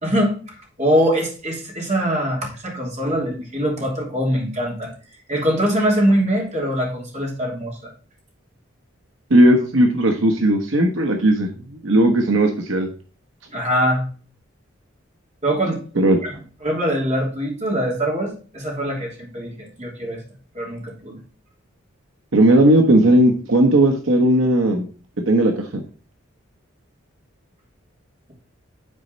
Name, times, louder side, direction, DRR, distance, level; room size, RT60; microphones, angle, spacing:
voice 1, 0.0-4.9 5.3-7.9 13.5-14.1 15.4-15.8 16.2-19.5 19.8-20.2 20.5-21.2, equal, 35° right, -1 dB, 2.9 m, -23 dB
voice 2, 9.3-11.5 11.8-12.9 16.0-16.2 22.3-24.8 25.3-25.5, right 1 dB, 75° right, 4 dB, 1.0 m, -16 dB
9.8 x 4.3 x 4.0 m, 0.40 s
head